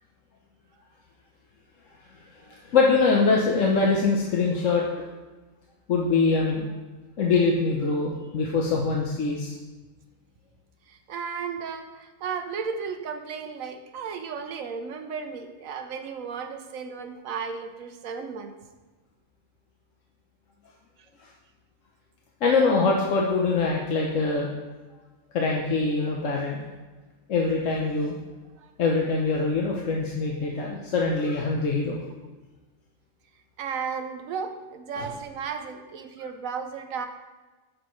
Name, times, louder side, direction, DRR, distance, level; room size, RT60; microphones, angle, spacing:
voice 1, 2.5-4.8 5.9-6.6 7.2-9.5 22.4-24.5 25.3-26.6 27.3-28.1 28.8-32.0, left 4 dB, 70° left, -1 dB, 1.2 m, -23 dB
voice 2, 10.9-18.5 28.6-28.7 33.6-37.1, right 6 dB, 85° right, 6 dB, 1.2 m, -34 dB
9.3 x 6.6 x 3.2 m, 1.2 s
omnidirectional pair, 1.4 m